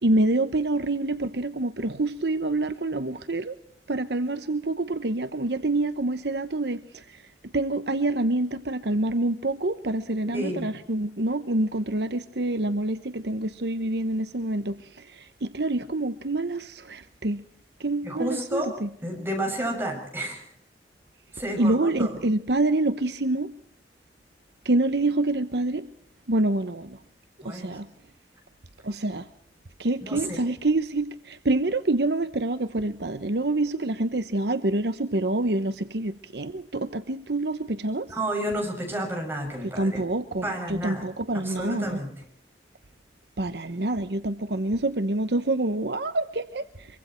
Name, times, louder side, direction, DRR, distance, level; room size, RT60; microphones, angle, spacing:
voice 1, 0.0-3.5 3.9-7.0 7.5-14.8 15.4-17.4 17.8-18.9 21.6-23.5 24.6-25.9 26.3-27.0 27.4-27.9 28.8-29.2 29.8-38.1 39.8-42.0 43.4-46.6, right 2 dB, 70° right, 1.0 m, -26 dB
voice 2, 10.3-10.7 18.0-18.7 19.0-20.5 21.3-22.1 27.4-27.8 30.1-30.4 38.1-40.0 40.4-41.1 41.3-42.1, right 1 dB, 15° right, 6.7 m, -31 dB
24.0 x 24.0 x 4.5 m
head